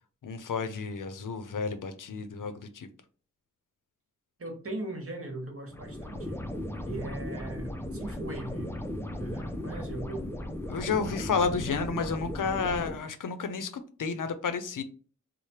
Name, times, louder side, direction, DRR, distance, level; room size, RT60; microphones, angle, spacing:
voice 1, 0.2-2.9 10.7-14.8, left 5 dB, 75° left, 9 dB, 0.5 m, -31 dB
voice 2, 4.4-6.5 6.9-8.7 9.2-10.3, right 2 dB, 45° right, 1 dB, 1.1 m, -39 dB
sound 1, 5.7-13.0, left 1 dB, 10° left, 0.3 m, -36 dB
3.2 x 2.0 x 4.2 m, 0.41 s
wide cardioid pair, 105°, 31 cm